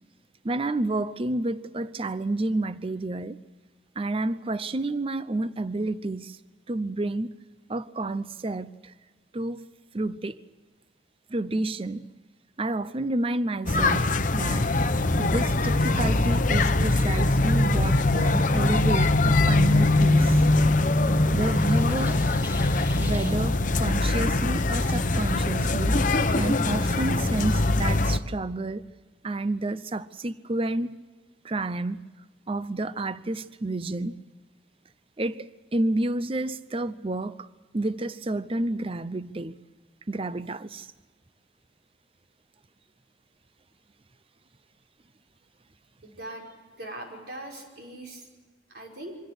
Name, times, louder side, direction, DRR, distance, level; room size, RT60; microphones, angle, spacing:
voice 1, 0.4-3.4 4.0-6.4 6.7-7.3 7.7-8.9 9.3-9.7 9.9-10.4 11.3-12.1 12.6-14.7 15.2-20.4 21.3-22.2 23.0-26.0 26.3-28.8 29.2-31.0 31.4-32.0 32.5-34.2 35.2-37.5 37.7-39.6 40.1-40.9, right 2 dB, 30° right, 0.6 m, -30 dB
sound 1, 13.7-28.2, left 2 dB, 45° left, 0.9 m, -22 dB
sound 2, 21.4-23.4, left 1 dB, 10° right, 5.9 m, -43 dB
voice 2, 46.0-46.4 46.8-48.3 48.7-49.2, right 1 dB, 55° right, 5.4 m, -40 dB
24.5 x 17.0 x 8.0 m
head